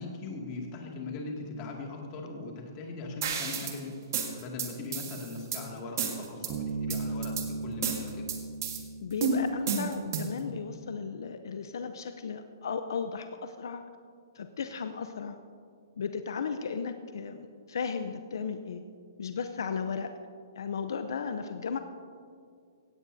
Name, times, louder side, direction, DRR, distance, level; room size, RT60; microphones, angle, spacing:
voice 1, 0.0-4.0 4.3-8.3, left 3 dB, 30° left, 0 dB, 2.3 m, -40 dB
sound 1, 3.2-3.8 4.1-5.6 6.0-6.5 6.9-7.5 7.8-8.8 9.2-10.4, right 5 dB, 55° right, 1.8 m, -31 dB
Bass guitar, 6.5-10.2, right 3 dB, 35° right, 1.4 m, -37 dB
voice 2, 9.0-13.8 14.3-15.4 16.0-18.8 19.2-20.1 20.6-21.8, left 6 dB, 70° left, 8 dB, 0.7 m, -35 dB
17.0 x 15.5 x 2.7 m, 2.3 s
hypercardioid pair, 160°, 2 cm